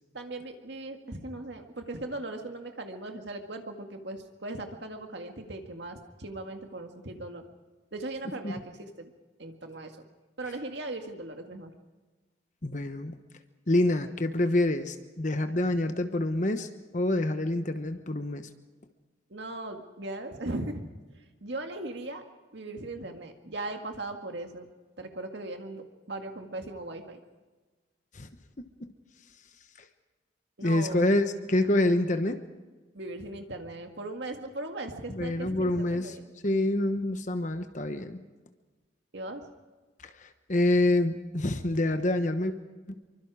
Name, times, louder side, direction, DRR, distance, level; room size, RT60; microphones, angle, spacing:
voice 1, 0.1-7.4 7.9-9.1 9.4-10.1 10.4-11.7 19.3-20.8 21.2-22.2 22.5-24.7 25.0-27.2 30.6-31.1 32.9-36.3 39.1-39.4, right 2 dB, 65° right, 4 dB, 2.0 m, -38 dB
voice 2, 12.6-13.2 13.7-18.5 28.1-28.3 30.6-32.4 35.1-36.2 36.4-38.2 40.0-42.5, left 1 dB, 40° left, 8 dB, 1.1 m, -27 dB
26.0 x 24.0 x 4.9 m, 1.3 s
head